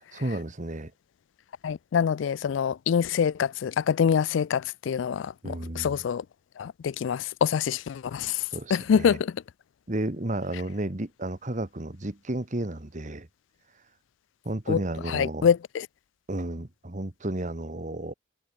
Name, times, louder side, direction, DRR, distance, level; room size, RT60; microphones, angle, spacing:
voice 1, 0.1-0.9 5.4-5.9 8.5-9.2 9.9-13.3 14.4-15.5 16.3-18.1, right 1 dB, 40° right, 1.4 m, -32 dB
voice 2, 1.6-6.2 6.6-9.4 14.7-14.8 15.1-15.9, left 7 dB, 80° left, 0.3 m, -25 dB
head